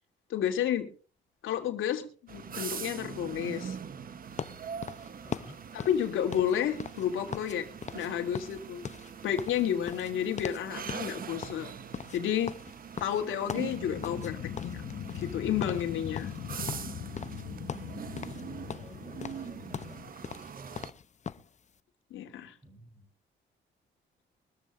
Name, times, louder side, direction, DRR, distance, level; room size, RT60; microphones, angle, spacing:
voice 1, 0.3-0.9 1.4-3.8 5.7-7.7 7.9-8.8 9.2-11.7 12.1-12.5 13.0-14.8 15.1-16.3 22.1-22.5, left 9 dB, 80° left, 5 dB, 2.9 m, -31 dB
sound 1, 2.3-20.9, right 7 dB, 45° right, 1.1 m, -43 dB
sound 2, 4.4-7.6 7.8-8.1 8.3-10.6 10.9-11.1 11.4-14.3 14.6-15.4 15.6-15.9 16.1-17.4 17.7-18.4 18.7-21.5, left 7 dB, 35° left, 0.8 m, -40 dB
voice 2, 5.2-5.6 18.1-19.1 19.4-20.9 22.6-23.1, equal, 15° right, 2 dB, 4.8 m, -54 dB
sound 3, 13.6-20.1, left 10 dB, 60° left, 1.0 m, -41 dB
23.5 x 14.0 x 2.6 m, 0.38 s
cardioid pair, 90°, 20 cm